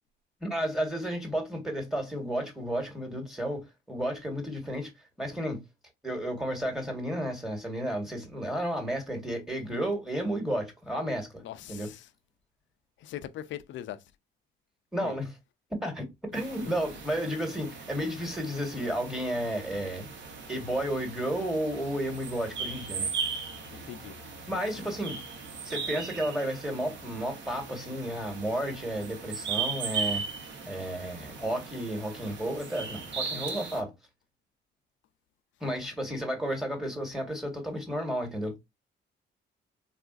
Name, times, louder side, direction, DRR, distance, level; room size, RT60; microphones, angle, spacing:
voice 1, 0.4-4.9 5.2-5.6 6.0-11.4 11.7-11.9 14.9-15.3 15.7-16.0 16.3-20.1 20.5-23.1 24.5-25.2 25.6-30.2 30.6-33.9 35.6-38.5, equal, ahead, 1.3 m, -32 dB
voice 2, 11.4-12.1 13.0-14.0 15.0-15.2 16.6-16.7 18.2-18.4 23.7-24.1, left 12 dB, 70° left, 0.5 m, -41 dB
sound 1, 16.3-33.8, right 5 dB, 65° right, 1.0 m, -38 dB
3.6 x 2.3 x 2.4 m
cardioid pair, 90°, 20 cm